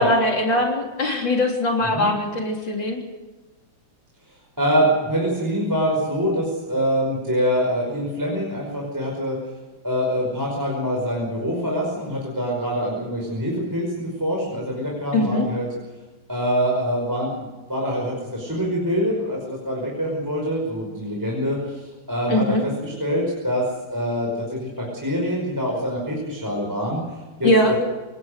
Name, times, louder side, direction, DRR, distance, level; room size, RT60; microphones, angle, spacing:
voice 1, 0.0-3.0 15.1-15.5 22.3-22.6 27.4-27.7, left 1 dB, 55° left, 1 dB, 4.1 m, -21 dB
voice 2, 4.6-9.4 9.8-15.7 16.3-23.6 23.9-27.8, equal, 10° right, -2 dB, 5.4 m, -25 dB
27.5 x 18.5 x 6.6 m, 1.2 s
omnidirectional pair, 2.4 m